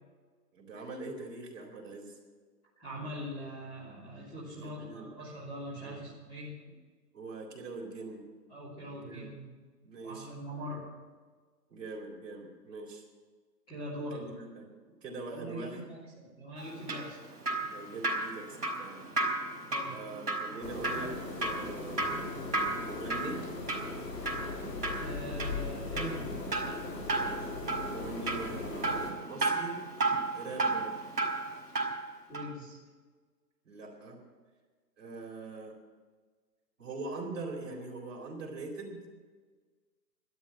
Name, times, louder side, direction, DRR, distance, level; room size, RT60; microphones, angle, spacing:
voice 1, 0.5-2.2 4.6-5.1 5.8-6.0 7.1-8.3 8.9-9.4 9.8-10.3 10.6-10.7 11.7-13.0 14.1-14.7 15.0-15.8 17.6-19.0 19.9-22.1 22.4-23.4 27.6-29.8 30.3-30.9 33.6-34.2 35.0-35.8 36.8-39.0, right 3 dB, 50° right, -1 dB, 4.1 m, -42 dB
voice 2, 2.8-6.5 8.5-9.5 10.0-10.9 13.7-14.3 15.3-17.2 19.7-19.9 25.0-26.3 32.3-32.8, equal, 10° left, -8 dB, 3.2 m, -42 dB
Drip, 16.6-32.1 32.3-32.5, right 2 dB, 65° right, 3.9 m, -34 dB
sound 1, 20.6-29.1, left 3 dB, 85° left, 3.7 m, -39 dB
12.5 x 11.5 x 7.7 m, 1.5 s
hypercardioid pair, 175°, 49 cm